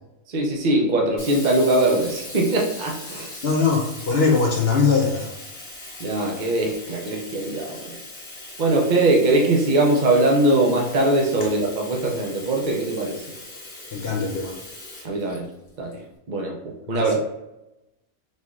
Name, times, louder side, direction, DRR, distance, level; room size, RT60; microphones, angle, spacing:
voice 1, 0.3-3.3 6.0-7.9 8.6-13.2 15.0-15.5 15.8-15.9 16.3-17.2, right 2 dB, 50° right, 0 dB, 0.5 m, -21 dB
Sink (filling or washing), 1.2-15.9, left 2 dB, 40° left, 1.3 m, -40 dB
voice 2, 3.4-5.3 13.9-14.5 16.9-17.2, left 4 dB, 60° left, 0 dB, 0.6 m, -21 dB
4.1 x 3.0 x 2.4 m, 0.93 s
omnidirectional pair, 1.5 m